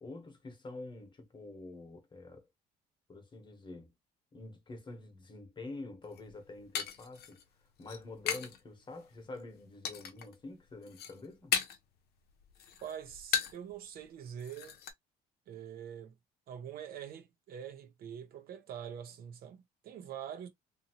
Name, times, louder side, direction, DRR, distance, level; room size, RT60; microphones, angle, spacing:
voice 1, 0.0-2.5 3.1-3.9 4.3-7.4 7.8-11.6, left 3 dB, 30° left, 1.1 m, -47 dB
sound 1, 6.0-8.6 8.9-9.4 9.8-10.3 10.7-11.9 12.3-13.7 14.0-14.1 14.4-14.9, left 8 dB, 70° left, 0.7 m, -37 dB
voice 2, 12.8-14.8 15.5-16.1 16.5-20.5, right 9 dB, 65° right, 0.8 m, -45 dB
2.7 x 2.6 x 2.8 m
cardioid pair, 110°, 17 cm